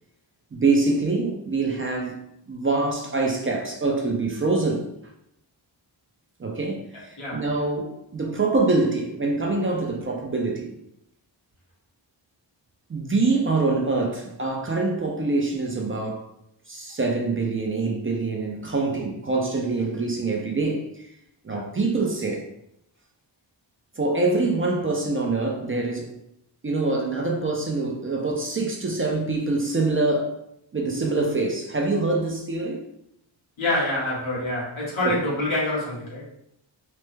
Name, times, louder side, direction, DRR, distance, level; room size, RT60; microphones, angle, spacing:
voice 1, 0.5-2.2 2.5-4.9 6.4-10.7 12.9-16.3 16.7-21.1 21.4-22.5 24.0-26.2 26.6-30.4 30.7-32.9 35.0-35.2, right 3 dB, 30° right, 0.4 m, -25 dB
voice 2, 33.6-36.2, left 1 dB, 90° left, 1.4 m, -26 dB
3.3 x 2.0 x 3.1 m
wide cardioid pair, 120°, 47 cm